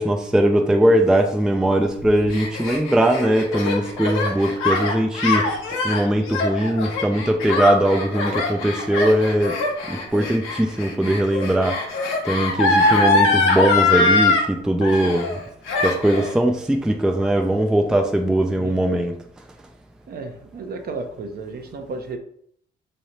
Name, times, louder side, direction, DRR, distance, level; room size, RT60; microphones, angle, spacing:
voice 1, 0.0-5.5 5.8-9.6 9.9-11.8 12.2-15.4 15.8-19.2, right 1 dB, 5° right, 0.4 m, -20 dB
Gasp, 2.0-14.5 14.8-15.4 15.7-16.3, left 3 dB, 90° left, 0.9 m, -22 dB
voice 2, 20.1-22.2, right 3 dB, 50° right, 0.7 m, -33 dB
3.2 x 2.7 x 4.2 m
cardioid pair, 90°, 20 cm